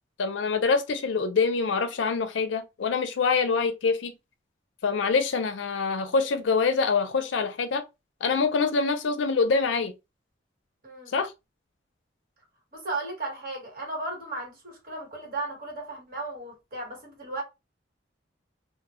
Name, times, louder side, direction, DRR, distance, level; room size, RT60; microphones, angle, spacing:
voice 1, 0.2-4.1 4.8-7.8 8.2-9.9 11.1-11.3, left 4 dB, 70° left, 0.4 m, -25 dB
voice 2, 10.8-11.1 12.7-17.4, right 2 dB, 50° right, 1.2 m, -35 dB
2.1 x 2.0 x 2.9 m
head